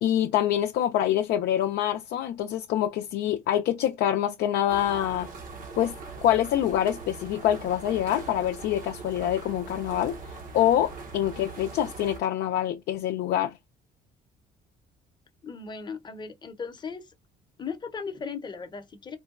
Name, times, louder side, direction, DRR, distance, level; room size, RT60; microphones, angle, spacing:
voice 1, 0.0-5.3 5.8-5.9 6.2-10.1 10.5-13.6, left 11 dB, 75° left, 0.4 m, -25 dB
sound 1, 4.7-12.2, right 4 dB, 55° right, 0.8 m, -41 dB
voice 2, 15.4-17.1 17.6-19.2, left 5 dB, 25° left, 0.7 m, -37 dB
3.7 x 2.2 x 2.3 m
cardioid pair, 110°, 17 cm